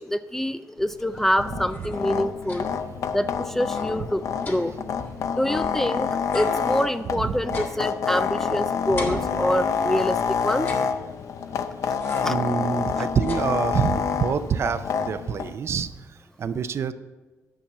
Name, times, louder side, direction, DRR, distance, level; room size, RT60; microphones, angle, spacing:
voice 1, 0.0-2.7 3.1-4.7 5.3-10.7 12.2-12.4 13.0-13.1, equal, 5° left, 12 dB, 0.3 m, -26 dB
sound 1, 0.8-15.5, left 6 dB, 65° left, 0.6 m, -28 dB
sound 2, 1.7-2.9 3.3-3.4 3.6-5.9 6.3-8.5 9.0-10.0 10.5-11.4 12.0-12.5 12.9-14.0, left 2 dB, 40° left, 1.9 m, -39 dB
voice 2, 7.2-7.6 12.2-16.9, right 6 dB, 50° right, 12 dB, 0.5 m, -27 dB
10.0 x 5.9 x 7.0 m, 1.3 s
cardioid pair, 130°, 6 cm